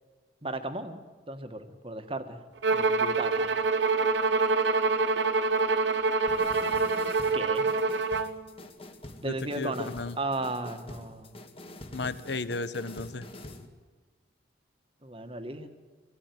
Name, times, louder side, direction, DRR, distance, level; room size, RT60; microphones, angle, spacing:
voice 1, 0.4-1.0 1.3-2.4 2.7-3.5 7.3-7.7 9.2-11.4 15.0-15.7, right 2 dB, 30° right, 7 dB, 1.7 m, -35 dB
Bowed string instrument, 2.6-8.4, right 3 dB, 70° right, 1.1 m, -26 dB
sound 1, 6.3-13.7, left 1 dB, 30° left, 1.9 m, -46 dB
voice 2, 9.2-10.2 11.9-13.3, left 3 dB, 65° left, 13 dB, 1.1 m, -34 dB
25.0 x 18.0 x 9.6 m, 1.4 s
head